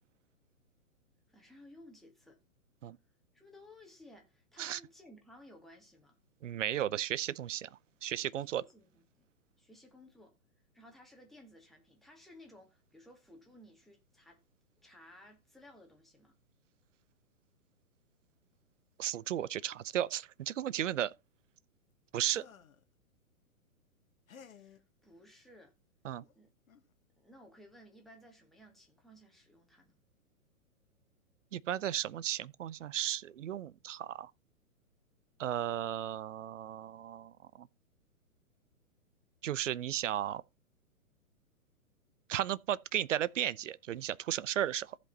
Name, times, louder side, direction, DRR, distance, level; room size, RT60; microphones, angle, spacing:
voice 1, 1.3-2.4 3.3-6.2 8.4-9.3 9.6-10.3 10.7-14.4 14.8-16.4 24.4-25.7 26.4-26.5 27.2-29.9, left 1 dB, ahead, 2.1 m, -57 dB
voice 2, 6.4-8.6 19.0-21.1 22.1-22.5 26.0-26.2 31.5-34.3 35.4-37.7 39.4-40.4 42.3-45.0, right 11 dB, 60° right, 0.6 m, -35 dB
sound 1, 22.3-22.8 24.3-24.8 26.2-26.3 26.7-26.9, left 7 dB, 70° left, 1.5 m, -55 dB
15.0 x 5.3 x 4.0 m
figure-of-eight pair, 120°, 43 cm